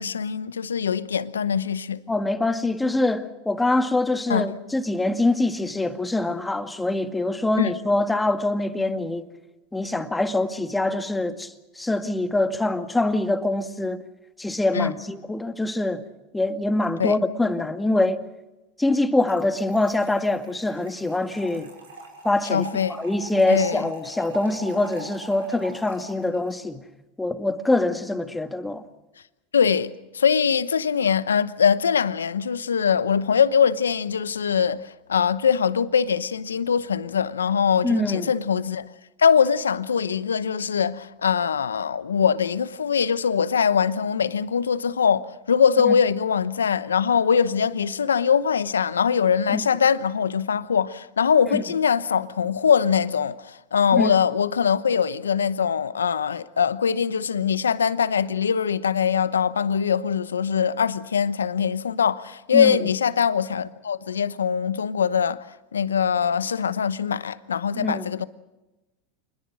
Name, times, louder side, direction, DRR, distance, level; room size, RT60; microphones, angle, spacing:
voice 1, 0.0-2.0 4.3-4.5 7.6-7.7 14.7-14.9 17.0-17.2 22.5-23.0 23.5-23.9 29.5-34.8 35.1-38.8 39.2-65.5 65.7-68.2, left 7 dB, 90° left, 0.9 m, -22 dB
voice 2, 2.1-9.2 9.7-14.0 14.4-16.0 16.3-18.2 18.8-21.7 22.2-26.8 27.2-28.8 37.8-38.3 45.8-46.0 49.5-49.6 51.5-51.6 53.9-54.1 62.5-62.9 67.7-68.1, left 2 dB, 10° left, 2.0 m, -24 dB
Trickle dribble / Fill (with liquid), 19.2-26.5, right 3 dB, 90° right, 6.7 m, -42 dB
27.5 x 21.0 x 6.3 m
hypercardioid pair, 90°, 0 cm